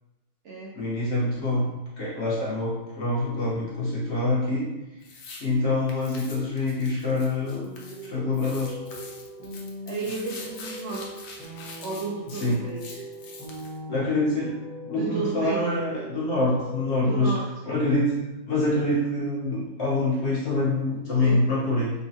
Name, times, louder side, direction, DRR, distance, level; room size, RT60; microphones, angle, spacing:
voice 1, 0.7-4.7 5.4-7.7 8.0-8.8 12.3-12.6 13.9-17.3 17.7-18.2 18.5-21.9, left 2 dB, 55° left, -6 dB, 0.9 m, -25 dB
sound 1, 5.0-5.4 5.9-8.1 8.3-13.8, left 4 dB, 75° left, 1.1 m, -44 dB
sound 2, 7.6-17.3, equal, 5° left, 0.8 m, -40 dB
voice 2, 9.9-11.1 11.8-13.0 15.0-15.6 17.1-17.4 21.2-21.4, right 4 dB, 65° right, -5 dB, 0.7 m, -32 dB
3.8 x 2.2 x 2.7 m, 1.1 s
omnidirectional pair, 1.6 m